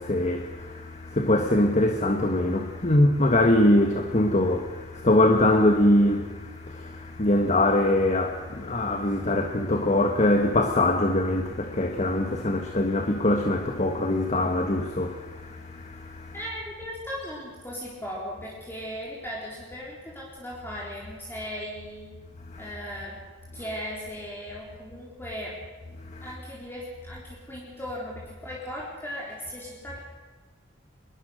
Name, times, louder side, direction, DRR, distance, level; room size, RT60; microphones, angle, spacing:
voice 1, 0.0-16.3 22.5-22.6 26.1-26.2, left 1 dB, 35° left, 1.6 m, -23 dB
voice 2, 16.3-22.1 22.6-23.2 23.5-25.6 26.2-30.0, equal, 10° left, 4.0 m, -37 dB
23.0 x 21.0 x 6.5 m
head